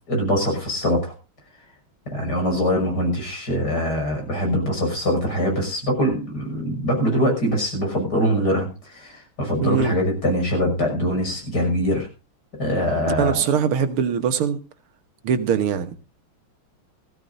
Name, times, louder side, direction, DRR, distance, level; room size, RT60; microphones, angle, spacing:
voice 1, 0.1-1.1 2.1-12.1 12.6-13.4, equal, 50° left, 6.7 m, -23 dB
voice 2, 9.6-9.9 13.2-14.6 15.2-16.0, right 7 dB, 90° right, 2.1 m, -22 dB
19.0 x 15.0 x 2.6 m
omnidirectional pair, 2.3 m